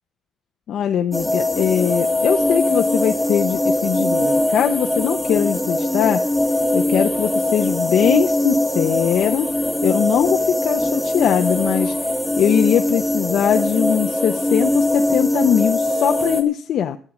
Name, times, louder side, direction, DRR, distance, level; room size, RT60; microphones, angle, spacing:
voice 1, 0.7-6.2 6.7-9.5 9.8-12.0 12.4-17.0, left 9 dB, 60° left, 5 dB, 0.6 m, -21 dB
sound 1, 1.1-16.4, left 1 dB, ahead, 1.5 m, -21 dB
12.5 x 8.6 x 6.1 m, 0.43 s
cardioid pair, 160°, 0 cm